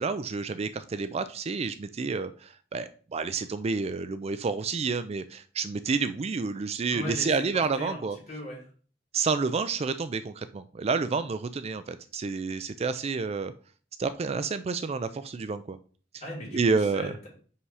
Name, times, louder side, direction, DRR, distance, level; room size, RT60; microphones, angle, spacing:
voice 1, 0.0-8.2 9.1-13.5 14.0-15.8 16.5-17.1, right 4 dB, 35° right, 12 dB, 0.4 m, -29 dB
voice 2, 6.9-7.3 7.8-8.7 16.2-17.3, left 1 dB, 40° left, -3 dB, 4.0 m, -38 dB
5.7 x 5.5 x 4.8 m, 0.42 s
head